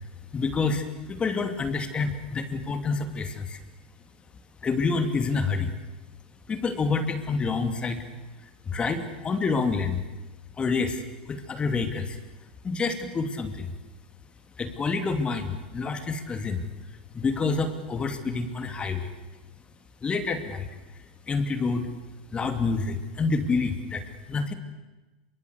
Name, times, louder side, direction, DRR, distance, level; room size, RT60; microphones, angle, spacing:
voice 1, 0.3-3.6 4.6-5.7 6.5-8.0 8.4-10.0 10.6-12.2 12.6-13.8 14.6-16.6 17.1-19.1 20.0-20.7 20.9-21.9 22.3-24.5, left 4 dB, 20° left, 8 dB, 2.8 m, -28 dB
26.5 x 24.0 x 8.3 m, 1.1 s
hypercardioid pair, 95°, 5 cm